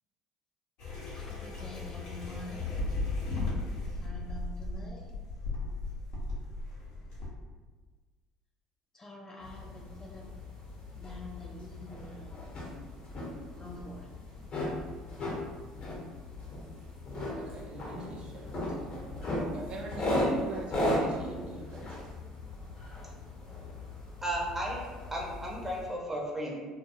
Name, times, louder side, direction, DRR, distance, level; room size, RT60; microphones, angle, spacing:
sound 1, 0.8-7.3, left 2 dB, 65° left, 0.8 m, -36 dB
voice 1, 1.1-2.8 4.0-5.1 8.9-10.3 11.0-12.5 13.6-14.1, left 1 dB, 25° left, -1 dB, 0.5 m, -46 dB
sound 2, 9.4-25.9, left 1 dB, 50° left, 1.0 m, -36 dB
voice 2, 17.4-19.3 19.5-22.1, right 3 dB, 50° right, -2 dB, 0.5 m, -43 dB
voice 3, 24.2-26.6, right 1 dB, 15° right, -2 dB, 0.7 m, -34 dB
2.2 x 2.2 x 2.8 m, 1.4 s
hypercardioid pair, 65°, 2 cm